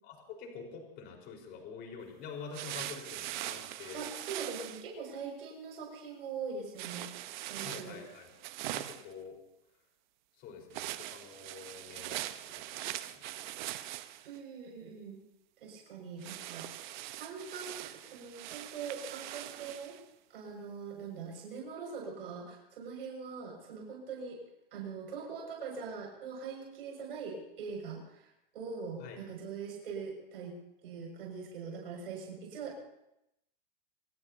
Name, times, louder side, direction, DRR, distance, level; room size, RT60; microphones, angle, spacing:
voice 1, 0.0-4.1 7.6-8.3 8.7-9.4 10.4-12.3 12.5-12.6 13.1-13.8 29.0-29.2, left 5 dB, 35° left, 2 dB, 4.5 m, -47 dB
sound 1, 2.5-4.8 6.8-9.1 10.7-14.4 16.2-20.0, right 14 dB, 50° right, 0.9 m, -42 dB
voice 2, 3.9-7.1 7.5-8.0 14.2-15.2 15.6-20.0 20.3-24.4 24.7-30.5 30.8-32.9, right 5 dB, 70° right, -1 dB, 6.3 m, -42 dB
26.0 x 18.0 x 2.8 m, 0.86 s
hypercardioid pair, 140°, 30 cm